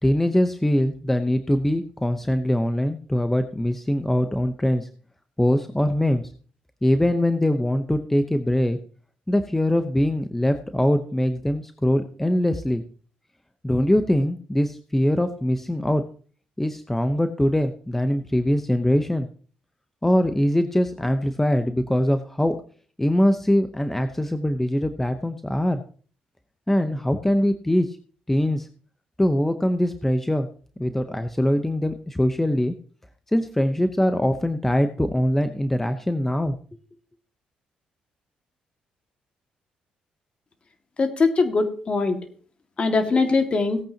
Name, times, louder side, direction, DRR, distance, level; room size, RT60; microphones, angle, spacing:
voice 1, 0.0-4.9 5.4-6.3 6.8-8.8 9.3-12.8 13.6-16.0 16.6-19.3 20.0-22.6 23.0-25.8 26.7-28.0 28.3-28.7 29.2-30.5 30.8-32.7 33.3-36.6, left 1 dB, 10° left, 8 dB, 0.9 m, -22 dB
voice 2, 41.0-42.2 42.8-43.8, left 3 dB, 40° left, 6 dB, 2.1 m, -21 dB
18.5 x 8.6 x 2.9 m, 0.42 s
cardioid pair, 80°, 3 cm